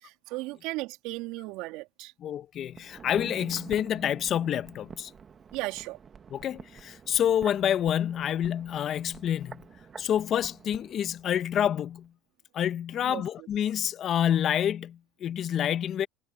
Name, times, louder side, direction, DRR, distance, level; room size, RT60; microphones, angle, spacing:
voice 1, 0.0-2.1 5.5-6.0 13.0-13.2, right 21 dB, 70° right, 3.1 m, -36 dB
voice 2, 2.2-5.1 6.3-9.6 10.0-12.1 12.5-16.1, left 10 dB, 45° left, 1.0 m, -28 dB
sound 1, 2.7-11.8 12.0-12.1, right 6 dB, 30° right, 1.9 m, -48 dB
supercardioid pair, 100°, 0 cm